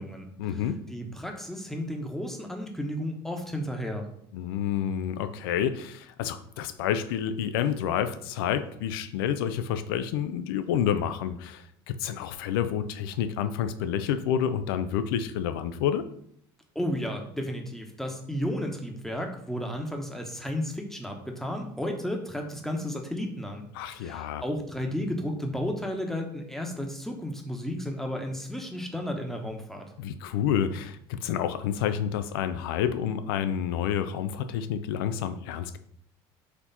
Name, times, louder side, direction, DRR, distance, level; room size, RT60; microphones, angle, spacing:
voice 1, 0.4-0.8 4.3-16.1 23.7-24.4 30.0-35.8, left 9 dB, 85° left, 11 dB, 0.4 m, -29 dB
voice 2, 0.9-4.1 16.7-29.9, equal, 5° left, 2 dB, 0.9 m, -33 dB
4.2 x 2.9 x 4.0 m, 0.70 s
supercardioid pair, 80°, 12 cm